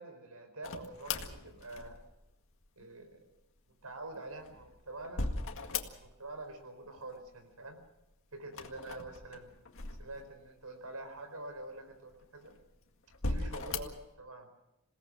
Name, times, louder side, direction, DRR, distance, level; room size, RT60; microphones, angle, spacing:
voice 1, 0.0-2.0 2.8-3.2 3.8-5.2 5.7-7.8 8.3-9.5 10.0-12.5 13.2-14.5, right 2 dB, 85° right, 8 dB, 4.4 m, -46 dB
sound 1, 0.6-2.3 4.1-6.4 6.6-7.3 8.5-10.6 11.2-11.3 12.1-12.7 13.1-14.1, left 3 dB, 65° left, 2.0 m, -39 dB
28.0 x 18.0 x 6.3 m, 0.89 s
head